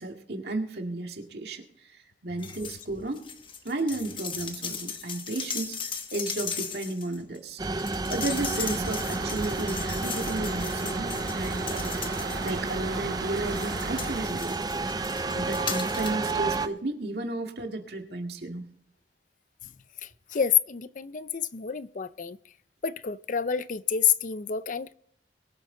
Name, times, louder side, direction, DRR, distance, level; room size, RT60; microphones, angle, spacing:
voice 1, 0.0-2.0 2.2-3.2 3.6-14.6 15.3-18.7, right 2 dB, 65° right, 2.0 m, -33 dB
sound 1, 2.4-2.8 3.1-12.9 13.4-16.3 16.6-16.7, left 6 dB, 30° left, 1.1 m, -38 dB
sound 2, 7.6-16.7, right 3 dB, 20° right, 0.5 m, -31 dB
sound 3, 8.4-14.2, right 3 dB, 85° right, 1.0 m, -38 dB
voice 2, 20.0-22.4 22.8-24.9, left 8 dB, 45° left, 0.5 m, -28 dB
22.5 x 8.1 x 3.9 m
head